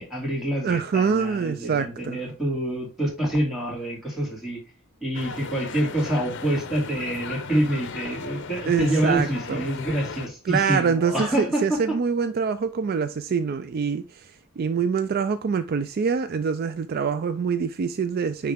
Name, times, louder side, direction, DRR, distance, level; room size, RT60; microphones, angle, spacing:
voice 1, 0.0-4.6 5.0-12.0, right 1 dB, ahead, 2.6 m, -27 dB
voice 2, 0.6-2.2 8.7-9.6 10.5-14.0 14.6-18.5, right 6 dB, 45° right, 0.3 m, -25 dB
sound 1, 5.1-10.3, left 4 dB, 60° left, 0.8 m, -36 dB
9.3 x 3.2 x 3.5 m
head